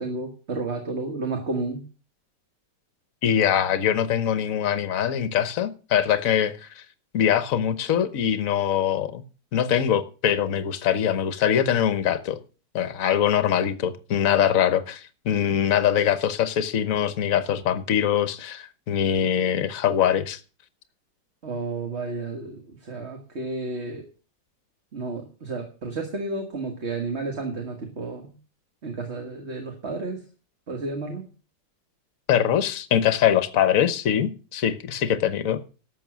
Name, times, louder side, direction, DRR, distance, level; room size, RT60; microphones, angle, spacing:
voice 1, 0.0-1.8 21.4-24.0 24.9-28.3 28.8-30.2 30.7-31.3, right 3 dB, 40° right, 1.9 m, -31 dB
voice 2, 3.2-6.8 7.1-9.2 9.5-12.4 12.7-20.4 32.3-35.6, left 9 dB, 55° left, 1.3 m, -23 dB
12.5 x 7.4 x 6.2 m
omnidirectional pair, 1.9 m